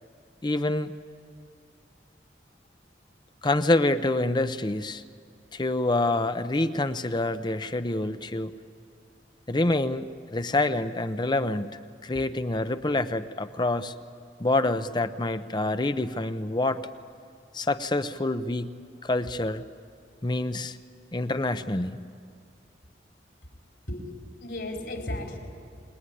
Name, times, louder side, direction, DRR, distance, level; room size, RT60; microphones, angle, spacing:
voice 1, 0.4-0.9 3.4-5.0 5.5-8.5 9.5-11.7 12.0-13.9 14.4-16.8 17.5-18.7 19.0-19.6 20.2-20.8 21.1-22.0, left 2 dB, 25° left, 11 dB, 0.7 m, -26 dB
voice 2, 23.9-25.4, left 1 dB, 70° left, 1 dB, 4.5 m, -35 dB
28.5 x 21.0 x 9.9 m, 2.3 s
head